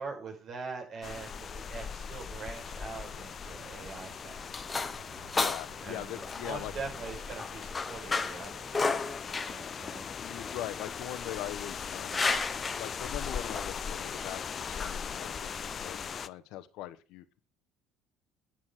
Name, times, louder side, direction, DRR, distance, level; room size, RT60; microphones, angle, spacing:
voice 1, 0.0-4.7 5.8-10.1, right 4 dB, 55° right, 1 dB, 5.5 m, -43 dB
sound 1, 1.0-16.3, left 7 dB, 40° left, 0.6 m, -40 dB
sound 2, 1.9-7.4, right 8 dB, 75° right, 1.9 m, -56 dB
sound 3, 3.8-16.1, left 4 dB, 25° left, 1.2 m, -36 dB
voice 2, 5.3-6.7 10.2-12.3 12.6-17.2, left 13 dB, 70° left, 12 dB, 1.1 m, -41 dB
10.0 x 7.2 x 6.4 m, 0.35 s
hypercardioid pair, 70°, 0 cm